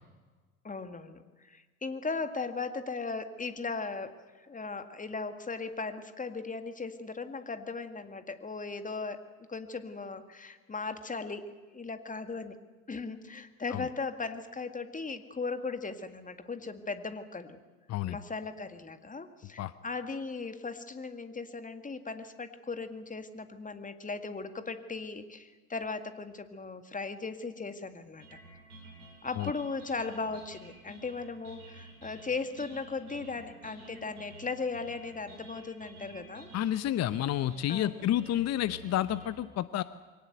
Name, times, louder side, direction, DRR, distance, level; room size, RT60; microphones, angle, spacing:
voice 1, 0.6-9.2 9.5-11.4 11.7-12.6 12.9-17.6 18.1-28.4 29.2-36.5 37.7-38.1, left 4 dB, 20° left, 9 dB, 2.0 m, -37 dB
sound 1, 28.2-39.3, right 2 dB, 80° right, 5.7 m, -51 dB
voice 2, 36.5-39.8, left 12 dB, 35° left, 15 dB, 0.8 m, -30 dB
22.5 x 18.0 x 8.1 m, 1.4 s
hypercardioid pair, 70°, 44 cm